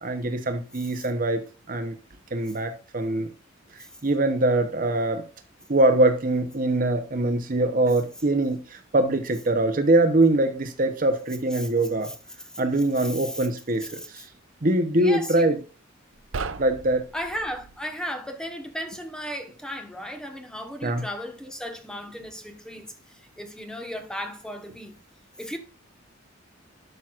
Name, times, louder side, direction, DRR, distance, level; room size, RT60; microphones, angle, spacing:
voice 1, 0.0-2.0 2.3-3.3 4.0-5.2 5.7-12.1 12.6-14.2 14.6-15.6 16.6-17.0 20.8-21.0, right 2 dB, 45° right, 0.9 m, -23 dB
voice 2, 13.0-13.5 13.9-14.3 15.0-15.5 17.1-24.9 25.4-25.6, equal, 5° left, 1.2 m, -35 dB
sound 1, 16.2-17.8, right 4 dB, 75° right, 0.6 m, -36 dB
12.0 x 5.8 x 2.5 m
head